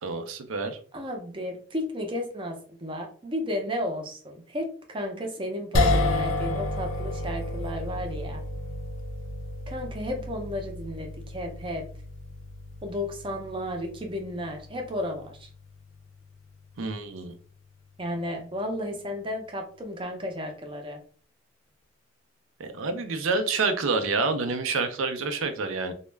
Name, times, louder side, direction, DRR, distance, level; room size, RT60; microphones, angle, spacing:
voice 1, 0.0-0.8 16.8-17.3 22.6-25.9, right 4 dB, 85° right, 8 dB, 0.5 m, -28 dB
voice 2, 0.9-8.4 9.7-11.8 12.8-15.5 18.0-21.0, left 1 dB, 25° right, 3 dB, 0.5 m, -33 dB
sound 1, 5.7-18.1, left 2 dB, 85° left, 0.5 m, -32 dB
2.2 x 2.0 x 3.2 m, 0.44 s
head